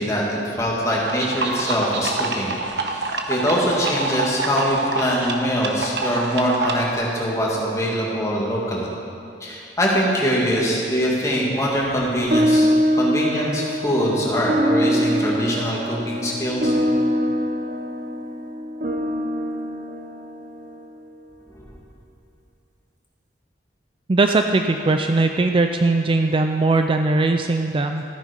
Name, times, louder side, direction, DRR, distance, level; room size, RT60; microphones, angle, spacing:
voice 1, 0.0-2.5 2.9-8.9 9.4-12.7 13.0-16.8, equal, 20° left, -4 dB, 2.3 m, -23 dB
sound 1, 1.0-6.9, right 3 dB, 75° right, 1.0 m, -27 dB
sound 2, 12.3-21.0, equal, 45° right, 0.8 m, -23 dB
voice 2, 24.1-28.0, right 3 dB, 30° right, 5 dB, 0.4 m, -19 dB
13.5 x 9.4 x 5.2 m, 2.7 s
head